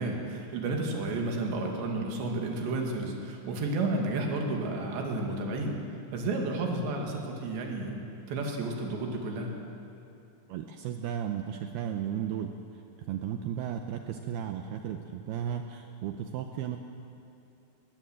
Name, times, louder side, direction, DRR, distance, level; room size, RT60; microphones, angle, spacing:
voice 1, 0.0-5.8 6.1-8.0 8.3-9.5, right 2 dB, 65° right, 1 dB, 4.4 m, -31 dB
voice 2, 10.5-12.5 13.1-16.8, right 9 dB, 85° right, 6 dB, 2.2 m, -34 dB
19.0 x 19.0 x 7.9 m, 2.8 s
omnidirectional pair, 5.5 m